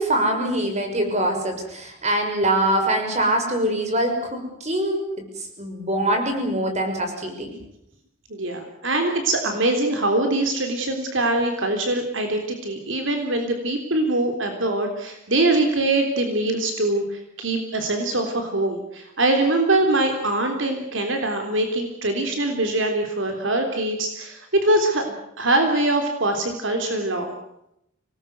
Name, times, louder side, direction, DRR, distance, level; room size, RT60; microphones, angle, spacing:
voice 1, 0.0-5.3 5.6-7.5, right 1 dB, 35° right, 5 dB, 6.0 m, -23 dB
voice 2, 8.3-27.4, right 2 dB, 70° right, 4 dB, 3.5 m, -23 dB
26.0 x 19.5 x 8.1 m, 0.80 s
head